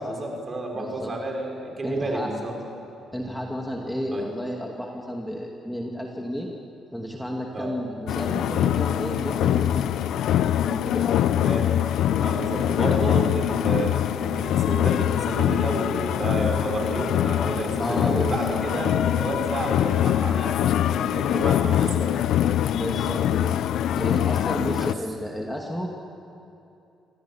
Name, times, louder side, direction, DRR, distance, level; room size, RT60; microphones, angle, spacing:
voice 1, 0.0-2.6 4.1-4.3 7.5-7.8 11.3-11.7 12.2-20.5 20.9-22.2 24.7-25.0, right 2 dB, 35° right, 1 dB, 5.2 m, -31 dB
voice 2, 0.7-1.1 1.8-2.3 3.1-6.5 6.9-9.8 10.6-11.1 17.8-19.0 21.3-21.4 22.7-23.6 23.9-25.9, equal, 5° left, 0 dB, 2.5 m, -32 dB
sound 1, 8.1-24.9, left 11 dB, 80° left, 0.6 m, -23 dB
26.0 x 17.5 x 8.8 m, 2.7 s
cardioid pair, 90°, 0 cm